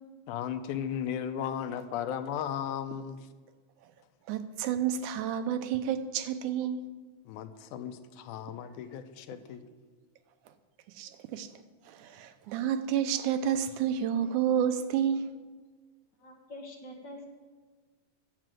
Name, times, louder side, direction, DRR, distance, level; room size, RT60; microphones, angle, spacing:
voice 1, 0.3-3.3 7.3-9.7, left 9 dB, 90° left, 10 dB, 2.2 m, -36 dB
voice 2, 4.3-6.8 11.0-11.5 11.9-15.3, right 9 dB, 85° right, 9 dB, 2.2 m, -30 dB
voice 3, 16.2-17.3, left 1 dB, 45° left, 0 dB, 2.0 m, -45 dB
11.0 x 7.8 x 7.5 m, 1.4 s
omnidirectional pair, 3.4 m